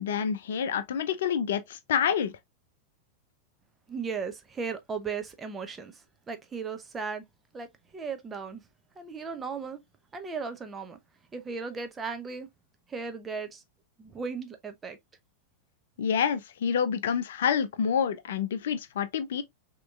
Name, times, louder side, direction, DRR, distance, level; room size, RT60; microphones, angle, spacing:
voice 1, 0.0-2.3 16.0-19.4, left 7 dB, 60° left, 0.6 m, -28 dB
voice 2, 3.9-5.9 6.3-7.2 7.5-7.7 7.9-8.6 9.0-9.8 10.1-11.0 11.3-12.5 12.9-13.6 14.0-15.0, right 5 dB, 20° right, 0.8 m, -36 dB
6.0 x 3.0 x 2.3 m
figure-of-eight pair, 90°, 0 cm